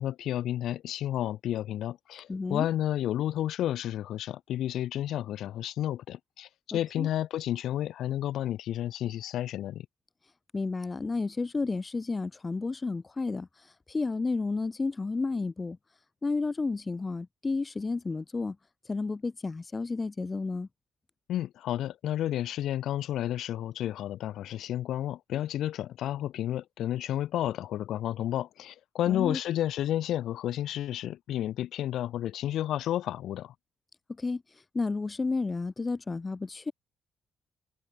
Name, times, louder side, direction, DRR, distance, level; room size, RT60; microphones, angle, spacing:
voice 1, 0.0-9.9 21.3-33.5, left 12 dB, 80° left, 3.8 m, -31 dB
voice 2, 2.3-2.7 6.7-7.1 10.5-13.5 13.9-15.8 16.2-18.6 18.9-20.7 29.1-29.4 34.2-34.4 34.7-36.7, left 3 dB, 25° left, 3.2 m, -31 dB
cardioid pair, 90°, 0 cm